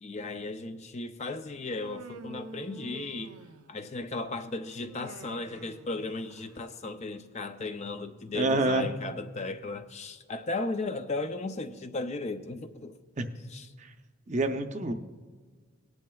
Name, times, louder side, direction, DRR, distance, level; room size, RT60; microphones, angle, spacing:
voice 1, 0.0-3.3 3.7-13.0 13.5-13.7, left 3 dB, 30° left, 9 dB, 0.4 m, -36 dB
Human voice, 1.6-3.9 4.8-6.7, right 3 dB, 80° right, 0.6 m, -47 dB
voice 2, 8.3-8.9 13.2-13.3 14.3-14.9, right 2 dB, 30° right, 7 dB, 0.6 m, -27 dB
18.5 x 10.5 x 2.3 m, 1.5 s
head